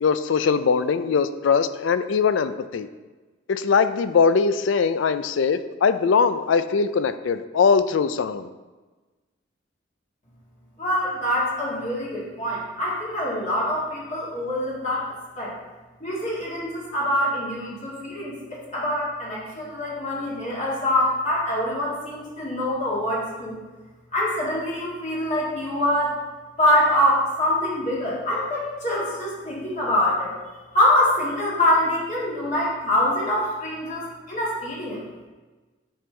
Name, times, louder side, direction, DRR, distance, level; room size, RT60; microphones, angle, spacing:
voice 1, 0.0-2.9 3.5-8.5, left 5 dB, 75° left, 12 dB, 0.4 m, -21 dB
voice 2, 10.8-15.5 16.0-23.6 24.1-26.2 26.6-30.4 30.7-35.1, left 1 dB, 40° left, -6 dB, 1.8 m, -24 dB
8.8 x 5.4 x 3.3 m, 1.3 s
head